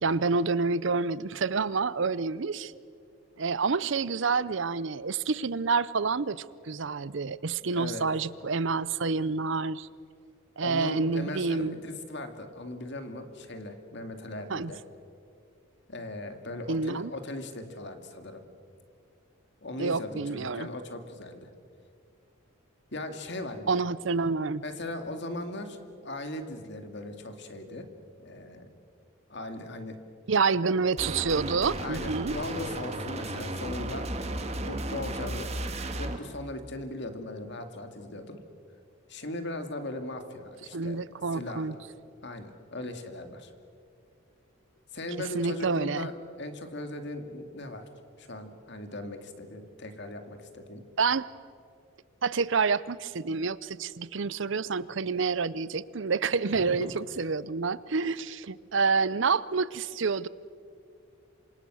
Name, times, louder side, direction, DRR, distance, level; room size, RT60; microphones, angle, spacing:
voice 1, 0.0-2.7 3.4-9.9 10.6-11.8 14.5-14.7 16.7-17.1 19.8-20.7 23.7-24.6 30.3-32.3 40.7-41.7 45.3-46.1 51.0-51.3 52.2-60.3, right 4 dB, 60° right, 18 dB, 0.6 m, -28 dB
voice 2, 7.7-8.1 10.6-14.8 15.9-18.4 19.6-21.5 22.9-23.8 24.6-27.9 28.2-28.7 29.3-30.0 31.8-34.1 34.3-38.4 39.1-41.0 41.3-41.7 42.2-43.5 44.9-47.8 48.2-50.8 56.5-56.9, left 2 dB, 55° left, 6 dB, 2.4 m, -38 dB
sound 1, 31.0-36.2, right 1 dB, 30° right, 1.8 m, -34 dB
27.5 x 26.0 x 6.4 m, 2.3 s
head